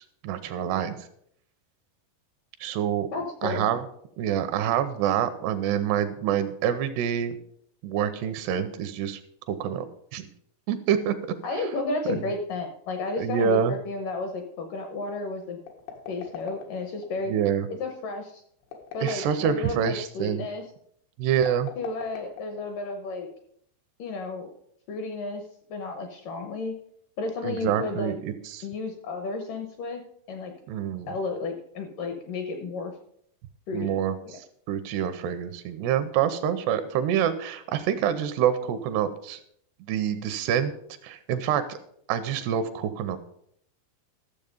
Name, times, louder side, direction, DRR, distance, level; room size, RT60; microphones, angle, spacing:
voice 1, 0.2-1.1 2.6-3.1 3.4-3.8 4.2-7.4 7.8-9.2 9.5-9.9 10.1-10.3 10.7-11.1 12.1-12.3 13.2-13.7 17.3-17.7 19.0-20.5 21.2-21.7 27.4-28.7 30.7-31.1 33.7-39.4 39.8-40.7 41.0-41.8 42.1-43.2, right 9 dB, 85° right, 10 dB, 2.7 m, -26 dB
voice 2, 3.1-3.7 11.4-15.6 16.1-17.3 17.8-18.4 18.9-20.7 21.8-23.3 24.0-24.5 24.9-25.4 25.7-26.8 27.2-28.1 28.6-30.0 30.3-30.5 31.1-32.9 33.7-33.9 34.3-34.4, left 3 dB, 70° left, 5 dB, 2.0 m, -32 dB
sound 1, 15.6-17.1 18.6-19.8 21.4-22.9, left 8 dB, 90° left, 4.0 m, -41 dB
13.5 x 7.2 x 5.2 m, 0.69 s
omnidirectional pair, 5.0 m